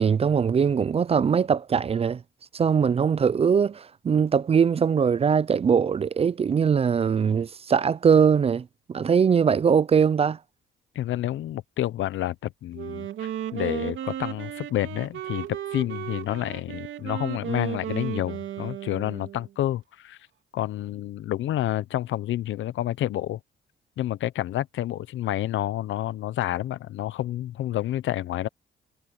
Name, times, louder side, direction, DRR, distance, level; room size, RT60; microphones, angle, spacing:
voice 1, 0.0-2.2 2.5-10.4, right 6 dB, 30° right, 0.4 m, -21 dB
voice 2, 10.9-20.2 20.5-23.4 24.0-28.5, left 13 dB, 75° left, 0.8 m, -29 dB
Wind instrument woodwind instrument, 12.7-19.5, right 11 dB, 75° right, 2.8 m, -34 dB
cardioid pair, 90°, 20 cm